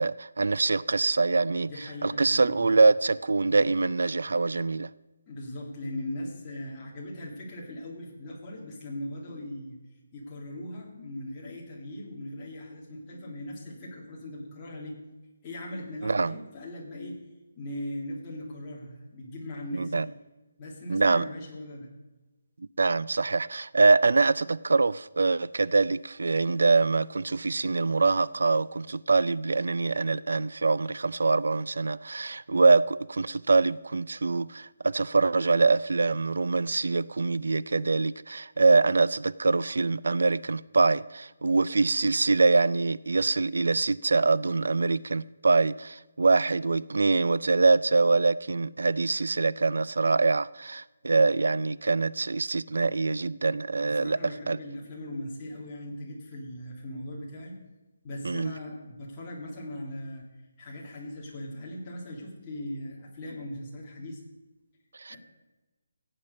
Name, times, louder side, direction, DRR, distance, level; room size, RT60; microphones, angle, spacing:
voice 1, 0.0-1.7 2.0-4.9 16.0-16.3 19.7-20.1 20.9-21.2 22.8-54.6 58.2-58.5 65.0-65.2, right 3 dB, 75° right, 0.3 m, -24 dB
voice 2, 1.7-2.7 5.3-9.8 10.1-15.0 15.4-17.2 17.6-20.1 20.6-21.9 53.8-57.6 58.0-60.3 60.6-64.2 65.1-65.2, left 1 dB, 15° left, 2.0 m, -39 dB
16.0 x 8.9 x 5.2 m
hypercardioid pair, 180°, 0 cm